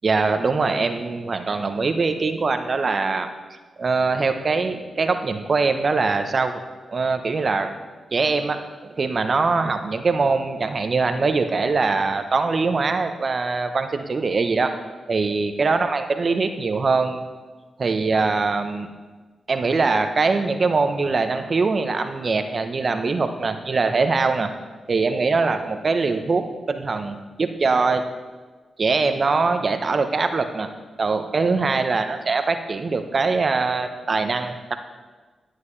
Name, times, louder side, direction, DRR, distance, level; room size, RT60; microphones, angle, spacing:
voice 1, 0.0-3.3 3.8-6.6 6.9-7.7 8.1-14.7 15.1-17.2 17.8-18.9 19.5-24.5 24.9-28.0 28.8-30.7 31.0-34.7, right 4 dB, 50° right, 7 dB, 0.9 m, -22 dB
11.0 x 9.4 x 3.3 m, 1.3 s
supercardioid pair, 40°, 0 cm